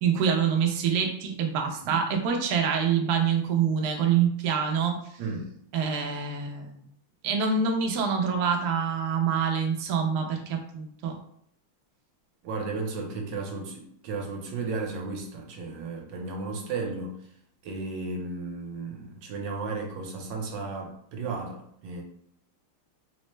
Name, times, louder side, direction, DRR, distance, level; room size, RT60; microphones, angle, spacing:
voice 1, 0.0-5.0 5.7-6.8 7.2-11.1, right 6 dB, 85° right, 3 dB, 0.8 m, -26 dB
voice 2, 12.4-17.2 17.6-22.0, right 3 dB, 70° right, 1 dB, 1.3 m, -34 dB
4.1 x 2.1 x 3.1 m, 0.67 s
omnidirectional pair, 2.3 m